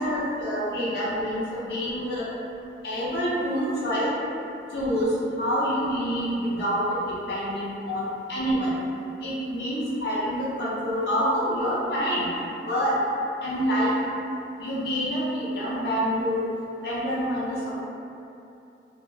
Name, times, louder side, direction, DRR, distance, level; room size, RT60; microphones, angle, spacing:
voice 1, 0.0-2.2 2.8-4.1 4.7-5.1 5.4-7.0 7.3-8.7 9.2-12.3 12.7-13.0 13.4-13.9 14.6-16.5 16.8-17.6, equal, 65° left, -8 dB, 0.5 m, -27 dB
2.2 x 2.0 x 3.0 m, 2.7 s
head